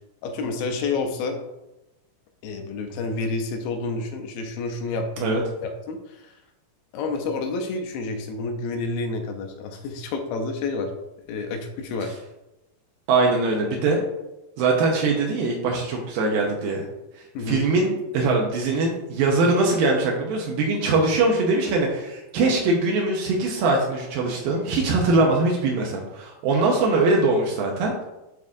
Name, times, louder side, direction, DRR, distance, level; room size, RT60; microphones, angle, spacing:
voice 1, 0.2-1.4 2.4-6.3 6.9-10.9 11.3-12.2 17.3-17.6, left 3 dB, 80° left, 4 dB, 2.4 m, -29 dB
voice 2, 13.1-14.0 14.6-16.8 17.5-28.0, right 3 dB, 80° right, 0 dB, 2.4 m, -22 dB
10.5 x 3.6 x 2.5 m, 0.96 s
omnidirectional pair, 4.2 m